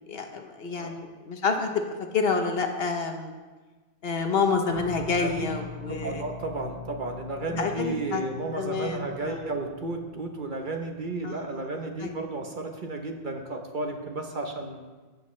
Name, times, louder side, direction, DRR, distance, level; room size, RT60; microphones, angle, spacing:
voice 1, 0.1-1.8 2.1-3.3 4.0-6.2 7.5-8.2 8.5-9.4 11.2-11.6 12.0-12.2, left 4 dB, 55° left, 5 dB, 1.0 m, -28 dB
sound 1, 4.7-11.0, left 4 dB, 80° right, 2.9 m, -43 dB
voice 2, 5.9-14.8, right 2 dB, 45° right, 4 dB, 0.9 m, -33 dB
14.5 x 7.6 x 3.2 m, 1.3 s
omnidirectional pair, 1.2 m